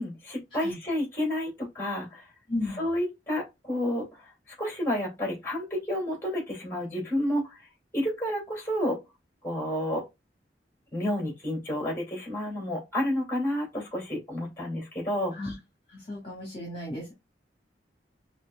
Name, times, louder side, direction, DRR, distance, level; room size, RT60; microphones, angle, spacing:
voice 1, 0.0-2.2 2.7-4.2 4.6-7.6 7.9-9.0 9.4-10.0 10.9-15.3, left 1 dB, 15° left, 2.4 m, -30 dB
voice 2, 2.5-2.8 15.3-15.5 15.9-17.1, left 1 dB, 30° left, 1.6 m, -34 dB
5.7 x 2.9 x 2.3 m
head